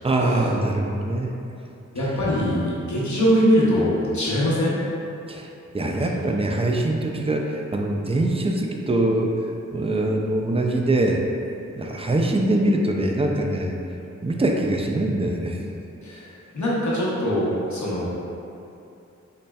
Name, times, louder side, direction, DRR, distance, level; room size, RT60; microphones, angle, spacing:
voice 1, 0.0-1.4 5.3-5.5 5.7-9.4 9.7-11.2 11.8-13.8 14.2-15.6, right 1 dB, 20° right, 1 dB, 0.3 m, -23 dB
voice 2, 1.9-4.8 5.8-6.4 16.0-18.1, equal, 75° left, -7 dB, 0.9 m, -22 dB
4.1 x 3.1 x 2.3 m, 2.7 s
wide cardioid pair, 65°, 29 cm